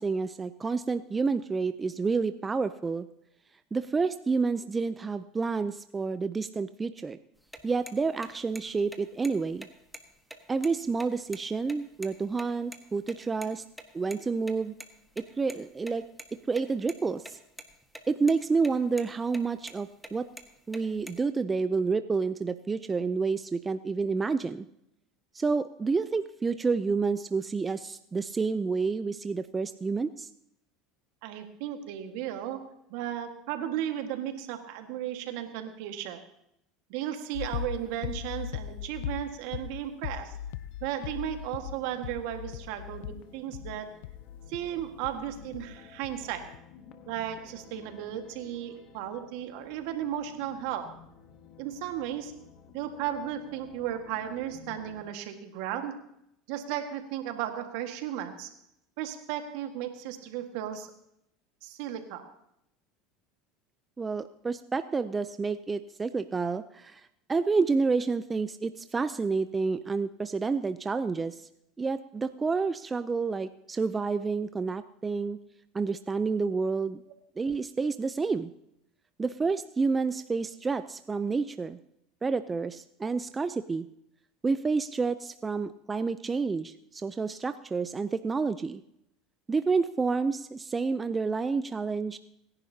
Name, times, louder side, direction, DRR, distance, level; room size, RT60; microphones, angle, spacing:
voice 1, 0.0-3.1 3.7-7.2 7.6-9.7 10.5-13.6 13.9-14.7 15.2-16.0 16.3-17.4 18.1-20.3 20.7-24.7 25.3-30.3 64.0-67.0 67.3-71.4 71.8-75.4 75.7-77.0 77.4-78.5 79.2-81.8 82.2-83.9 84.4-88.8 89.5-92.2, right 4 dB, 20° right, 11 dB, 0.5 m, -29 dB
sound 1, 7.4-12.5 12.7-12.8 13.1-13.2 13.4-13.5 13.8-13.9 14.1-14.2 14.5-15.6 15.8-16.3 16.6-17.3 17.6-18.0 18.3-18.7 19.0-19.1 19.3-19.8 20.0-21.2, right 1 dB, ahead, 1.6 m, -44 dB
voice 2, 31.2-36.3 36.9-40.4 40.8-44.0 44.5-46.6 47.1-51.0 51.6-52.3 52.7-56.1 56.5-58.5 59.0-60.9 61.6-62.3, right 11 dB, 70° right, 6 dB, 1.7 m, -35 dB
sound 2, 37.3-45.8 46.0-46.6, left 10 dB, 75° left, 0.5 m, -39 dB
sound 3, 40.4-55.0, left 7 dB, 55° left, 1.4 m, -54 dB
27.0 x 11.0 x 2.8 m, 0.78 s
hypercardioid pair, 85°, 0 cm